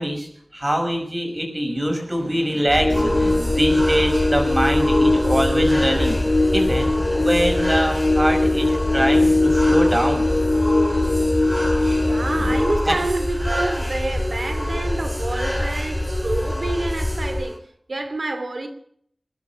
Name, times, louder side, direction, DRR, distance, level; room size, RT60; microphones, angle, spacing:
voice 1, 0.0-6.2 6.5-10.2 12.4-12.5 12.9-13.0, equal, 30° right, 6.1 m, -23 dB
sound 1, 2.7-17.4, left 1 dB, 30° left, 6.2 m, -27 dB
sound 2, 2.8-12.7, left 2 dB, 50° left, 3.1 m, -21 dB
ghost in the church, 2.9-17.6, equal, ahead, 6.3 m, -31 dB
voice 2, 12.0-18.7, right 2 dB, 70° right, 2.7 m, -28 dB
21.5 x 11.0 x 5.9 m
wide cardioid pair, 50°, 0 cm